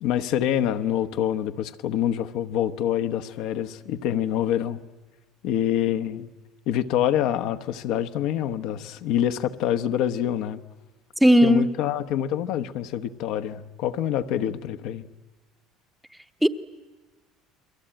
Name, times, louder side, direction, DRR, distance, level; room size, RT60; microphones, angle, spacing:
voice 1, 0.0-4.8 5.4-6.3 6.7-10.6 11.4-15.1, left 10 dB, 65° left, 1.1 m, -26 dB
voice 2, 11.2-11.7 16.4-16.5, equal, ahead, 0.9 m, -16 dB
30.0 x 22.0 x 9.0 m
cardioid pair, 155°, 0 cm